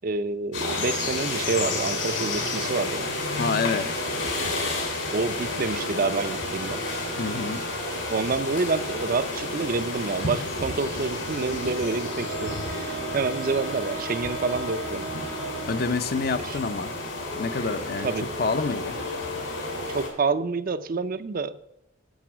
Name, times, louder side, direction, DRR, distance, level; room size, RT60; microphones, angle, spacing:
voice 1, 0.0-3.0 5.1-6.8 8.1-15.1 16.4-16.6 18.0-18.3 19.9-21.6, right 4 dB, 50° right, 12 dB, 0.5 m, -28 dB
sound 1, 0.5-20.1, left 2 dB, 85° left, 3.8 m, -31 dB
voice 2, 3.4-3.9 7.2-7.6 15.7-16.9 17.4-19.0, left 4 dB, 55° left, 11 dB, 0.6 m, -28 dB
sound 2, 5.7-9.7 10.8-16.6, right 5 dB, 75° right, 0.8 m, -40 dB
10.5 x 7.1 x 6.1 m, 0.84 s
head